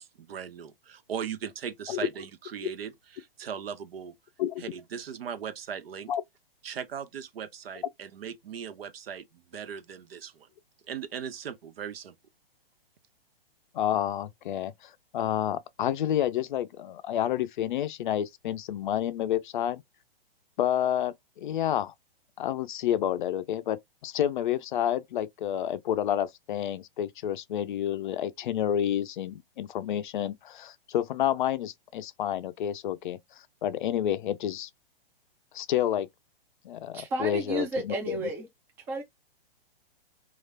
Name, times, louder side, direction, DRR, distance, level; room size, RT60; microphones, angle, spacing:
voice 1, 0.0-4.1 4.6-6.1 6.6-10.5 10.9-12.1, right 8 dB, 75° right, 0.7 m, -38 dB
voice 2, 13.7-19.8 20.6-21.9 22.4-33.2 33.6-34.7 35.5-36.1 36.6-38.2, left 11 dB, 55° left, 0.4 m, -29 dB
voice 3, 36.9-38.5 38.9-39.0, right 2 dB, 10° right, 0.3 m, -32 dB
3.2 x 2.4 x 2.2 m
hypercardioid pair, 135°, 30 cm